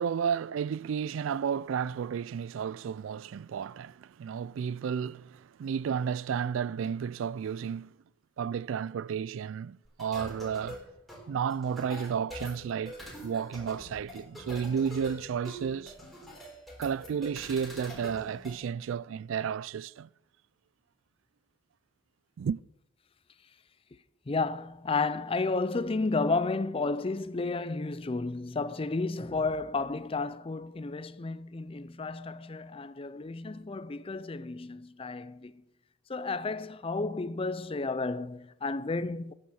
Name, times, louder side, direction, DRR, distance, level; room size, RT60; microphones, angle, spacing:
voice 1, 0.0-7.9 8.4-10.8 11.3-13.0 13.2-15.9 16.8-20.1 22.4-22.6, right 7 dB, 70° right, 0.3 m, -32 dB
sound 1, 9.8-18.6, left 1 dB, ahead, 3.9 m, -45 dB
voice 2, 24.3-35.5 36.1-39.3, left 3 dB, 25° left, 0.4 m, -32 dB
10.0 x 9.9 x 6.3 m
head